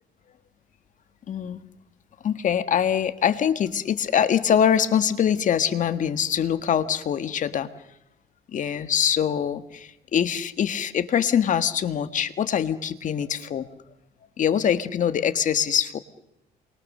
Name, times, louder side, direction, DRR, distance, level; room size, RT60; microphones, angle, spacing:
voice 1, 1.3-1.6 2.2-7.7 8.5-13.7 14.4-16.0, left 8 dB, 50° left, 11 dB, 1.6 m, -23 dB
28.0 x 23.0 x 6.6 m, 0.86 s
cardioid pair, 110°, 17 cm